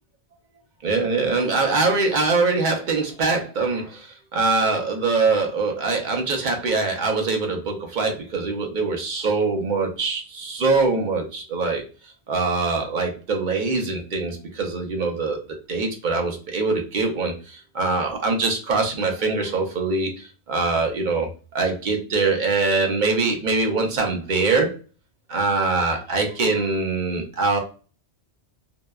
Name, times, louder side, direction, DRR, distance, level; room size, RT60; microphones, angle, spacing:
voice 1, 0.8-11.8 12.3-15.4 15.7-21.3 21.5-24.8 25.3-27.6, right 3 dB, 50° right, 3 dB, 0.7 m, -23 dB
2.8 x 2.1 x 2.2 m, 0.35 s
omnidirectional pair, 1.1 m